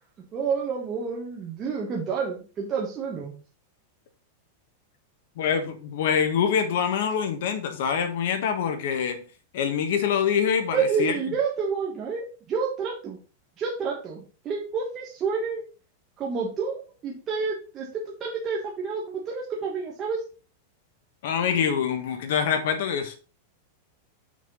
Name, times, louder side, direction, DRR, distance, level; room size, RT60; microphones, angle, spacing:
voice 1, 0.3-3.3 10.7-13.2 13.6-15.6 16.2-20.2, right 5 dB, 20° right, 1.1 m, -29 dB
voice 2, 5.4-9.2 9.5-11.2 21.2-23.2, left 7 dB, 55° left, 1.3 m, -25 dB
6.4 x 4.2 x 5.3 m
supercardioid pair, 180°, 0 cm